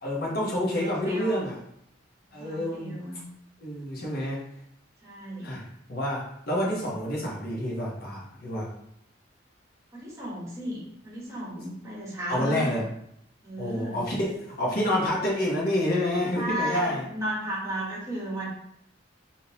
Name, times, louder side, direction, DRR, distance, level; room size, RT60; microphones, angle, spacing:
voice 1, 0.0-1.6 2.3-3.0 3.6-4.4 5.4-5.6 5.9-8.7 12.3-12.9 13.6-17.0, left 1 dB, 50° left, -4 dB, 1.0 m, -28 dB
voice 2, 0.7-1.4 2.4-3.2 5.0-5.5 9.9-12.8 13.4-14.0 16.3-18.5, right 1 dB, 15° right, -5 dB, 1.1 m, -34 dB
3.6 x 2.7 x 2.8 m, 0.75 s
head